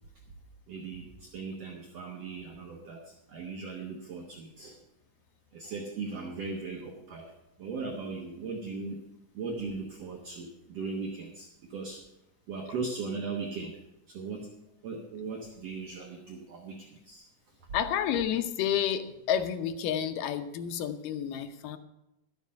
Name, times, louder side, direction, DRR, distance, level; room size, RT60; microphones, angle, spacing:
voice 1, 0.7-4.8 5.5-7.3 7.6-9.0 9.3-12.0 12.5-13.8 14.1-14.5 14.8-17.2, right 4 dB, 60° right, 0 dB, 2.0 m, -38 dB
voice 2, 17.7-21.8, left 9 dB, 85° left, 9 dB, 2.4 m, -30 dB
12.5 x 7.2 x 6.4 m, 0.90 s
omnidirectional pair, 3.7 m